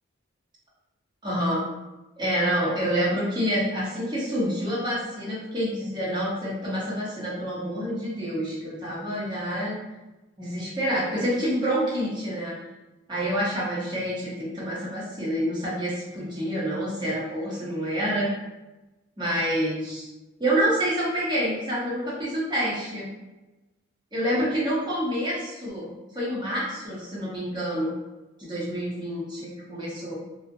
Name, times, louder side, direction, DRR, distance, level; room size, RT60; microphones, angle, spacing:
voice 1, 1.2-1.6 2.2-9.7 10.4-12.5 13.1-18.3 19.2-20.1 20.4-23.1 24.1-27.9 28.4-30.2, equal, 20° right, -7 dB, 0.7 m, -27 dB
2.6 x 2.0 x 2.5 m, 1.1 s
head